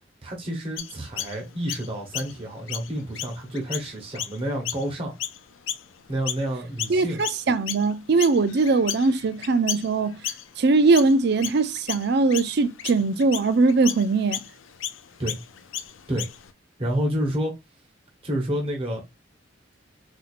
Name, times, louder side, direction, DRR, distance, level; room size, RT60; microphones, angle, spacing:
voice 1, 0.2-5.1 6.1-7.2 15.2-15.4 16.1-16.3 16.8-17.5 18.2-19.0, right 1 dB, 30° right, 1.1 m, -29 dB
Chirp tweet, 0.8-6.5 6.8-16.5, left 11 dB, 80° left, 0.4 m, -35 dB
voice 2, 6.9-10.2 10.6-14.4, right 3 dB, 55° right, 0.4 m, -21 dB
4.3 x 2.7 x 2.5 m
head